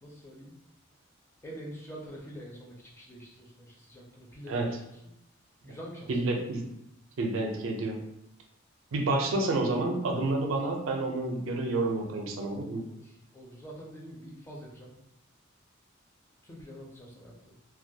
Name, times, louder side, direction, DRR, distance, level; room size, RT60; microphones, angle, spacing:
voice 1, 0.0-0.5 1.4-5.2 5.6-6.4 12.8-14.9 16.4-17.5, equal, 10° left, -2 dB, 0.4 m, -46 dB
voice 2, 6.1-6.6 7.2-8.0 8.9-12.8, right 2 dB, 70° right, 2 dB, 0.4 m, -29 dB
2.2 x 2.1 x 2.6 m, 0.82 s
head